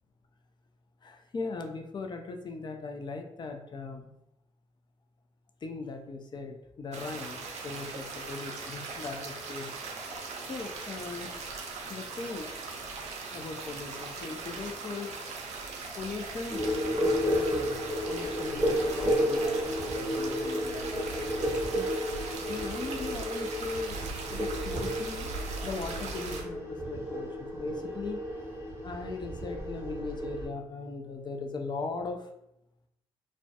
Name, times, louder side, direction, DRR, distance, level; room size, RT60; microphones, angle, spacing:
voice 1, 1.0-4.1 5.6-9.7 10.0-11.4 11.9-12.5 13.3-15.1 16.0-16.7 17.0-17.7 18.1-22.0 22.5-24.0 24.3-25.3 25.6-28.2 28.8-32.3, left 4 dB, 35° left, 4 dB, 0.4 m, -39 dB
sound 1, 6.9-26.4, right 4 dB, 55° right, 0.5 m, -39 dB
sound 2, 16.5-30.5, equal, 15° right, 0.8 m, -32 dB
2.1 x 2.1 x 2.8 m, 0.81 s
hypercardioid pair, 45°, 14 cm